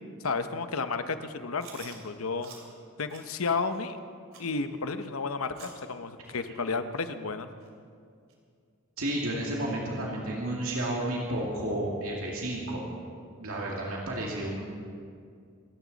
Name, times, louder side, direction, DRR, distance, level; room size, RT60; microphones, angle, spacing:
voice 1, 0.2-2.5 3.0-4.0 4.4-7.5, left 4 dB, 80° left, 9 dB, 0.9 m, -32 dB
Chewing mastication, 1.6-2.0 2.4-2.6 3.1-3.3 3.7-3.8 4.3-4.5 5.0-5.1 5.5-5.8 6.2-6.3 7.0-7.1 7.6-7.7 8.3-8.4, right 6 dB, 70° right, 2.9 m, -48 dB
voice 2, 9.0-12.8 13.4-14.6, right 1 dB, 90° right, -3 dB, 2.2 m, -31 dB
25.5 x 13.5 x 4.1 m, 2.3 s
head